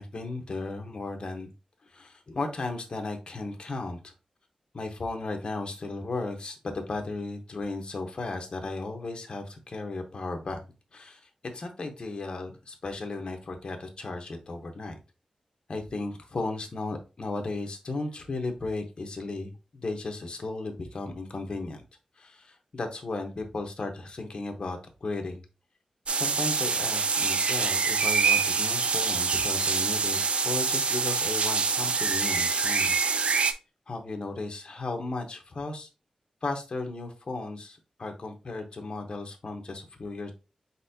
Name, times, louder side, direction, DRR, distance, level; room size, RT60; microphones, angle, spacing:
voice 1, 0.0-1.5 1.8-4.1 4.7-10.7 10.9-15.0 15.7-21.8 22.2-25.4 26.1-30.2 30.4-33.0 33.9-35.9 36.4-40.3, left 3 dB, 45° left, 4 dB, 1.0 m, -35 dB
sound 1, 26.1-33.5, right 5 dB, 65° right, 0.4 m, -25 dB
4.3 x 4.1 x 2.7 m, 0.30 s
wide cardioid pair, 130°, 2 cm